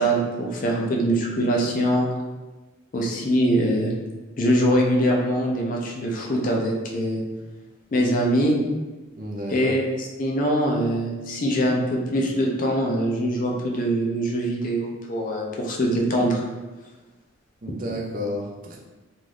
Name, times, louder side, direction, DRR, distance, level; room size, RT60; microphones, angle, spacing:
voice 1, 0.0-2.1 2.9-3.9 4.4-7.2 7.9-8.6 9.5-16.4, equal, 40° left, -1 dB, 0.4 m, -23 dB
voice 2, 9.2-9.7 17.6-18.8, left 1 dB, 45° right, -2 dB, 0.5 m, -31 dB
2.6 x 2.3 x 3.2 m, 1.2 s
head